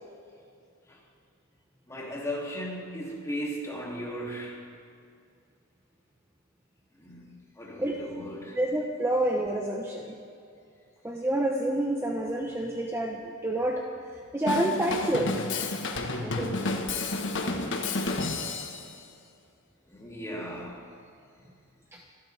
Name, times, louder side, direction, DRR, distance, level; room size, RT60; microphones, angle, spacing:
voice 1, 1.9-4.7 6.9-8.6 19.9-20.9, equal, 15° left, -3 dB, 2.8 m, -37 dB
voice 2, 8.5-10.1 11.0-13.8 14.3-15.4 16.2-16.6 21.9-22.0, right 1 dB, 10° right, 0 dB, 1.0 m, -28 dB
Drum kit / Drum, 14.5-18.9, left 3 dB, 60° left, 1.4 m, -30 dB
27.0 x 12.5 x 3.5 m, 2.4 s
head